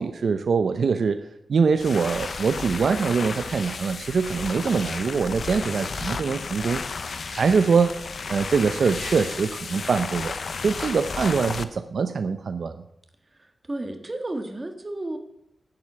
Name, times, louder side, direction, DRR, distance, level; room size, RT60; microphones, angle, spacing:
voice 1, 0.0-8.0 8.3-10.3 10.6-12.8, right 5 dB, 70° right, 9 dB, 0.7 m, -23 dB
sound 1, 1.7-11.6, left 4 dB, 60° left, 0.7 m, -33 dB
voice 2, 13.3-15.2, right 2 dB, 25° right, 5 dB, 1.7 m, -33 dB
11.0 x 7.9 x 8.5 m, 0.79 s
wide cardioid pair, 135°, 0 cm